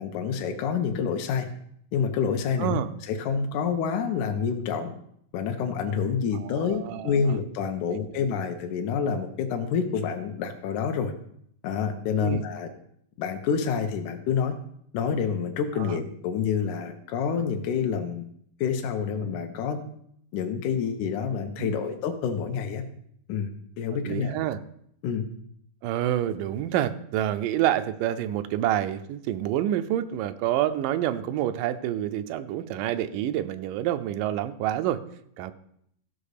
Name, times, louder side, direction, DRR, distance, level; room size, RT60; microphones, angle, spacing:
voice 1, 0.0-1.5 1.9-2.8 3.1-4.9 5.3-11.1 11.6-12.7 13.2-14.6 14.9-18.2 18.6-19.8 20.3-22.8 23.3-23.5 23.8-24.4 25.0-25.2, left 6 dB, 75° left, 5 dB, 2.3 m, -28 dB
voice 2, 6.4-7.2 12.2-12.4 15.8-16.0 21.6-21.8 23.9-24.6 25.8-35.0 35.4-35.5, right 12 dB, 85° right, 10 dB, 2.3 m, -28 dB
14.5 x 5.1 x 6.6 m, 0.69 s
omnidirectional pair, 3.8 m